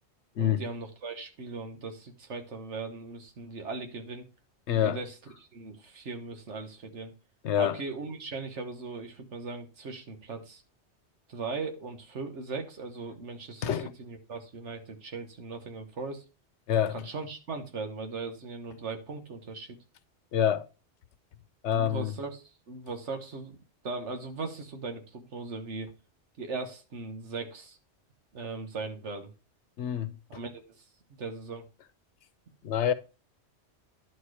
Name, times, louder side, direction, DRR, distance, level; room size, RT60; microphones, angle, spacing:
voice 1, 0.4-4.2 4.7-7.1 7.6-10.6 11.3-16.2 16.9-19.8 21.7-23.6 23.8-25.9 26.4-27.8 28.3-29.3 30.3-30.8 31.2-31.6, right 4 dB, 90° right, 1.6 m, -39 dB
voice 2, 4.7-5.0 7.4-7.8 13.6-13.9 16.7-17.0 20.3-20.7 21.6-22.1 29.8-30.1 32.6-32.9, left 9 dB, 80° left, 1.0 m, -26 dB
10.5 x 4.3 x 4.8 m
omnidirectional pair, 1.2 m